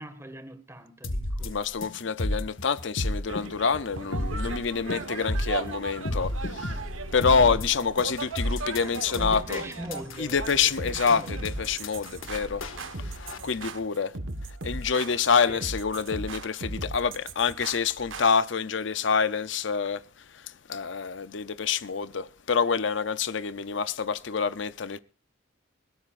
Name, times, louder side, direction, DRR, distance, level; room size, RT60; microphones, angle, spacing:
voice 1, 0.0-1.5 7.3-7.7 8.8-11.4 15.5-15.6, right 1 dB, 15° right, 1.8 m, -41 dB
sound 1, 1.0-13.4, left 1 dB, 85° left, 1.8 m, -32 dB
voice 2, 1.4-6.8 7.1-9.6 10.2-12.6 13.0-14.1 14.6-25.0, left 5 dB, 65° left, 0.6 m, -27 dB
sound 2, 3.3-13.7, right 4 dB, 90° right, 1.3 m, -39 dB
sound 3, 10.4-18.3, right 2 dB, 75° right, 1.5 m, -38 dB
21.0 x 17.0 x 2.5 m
head